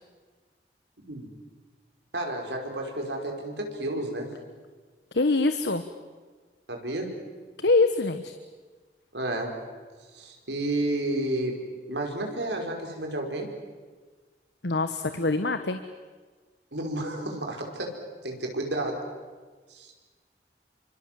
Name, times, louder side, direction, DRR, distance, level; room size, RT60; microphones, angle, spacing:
voice 1, 1.0-1.3 2.1-4.3 6.7-7.1 9.1-9.5 10.1-11.6 11.9-13.5 16.7-17.9 18.2-19.0 19.7-19.9, right 1 dB, 80° right, 2 dB, 5.3 m, -31 dB
voice 2, 5.1-5.8 7.6-8.3 14.6-15.8, left 3 dB, 80° left, 9 dB, 1.2 m, -24 dB
28.5 x 25.5 x 7.7 m, 1.4 s
head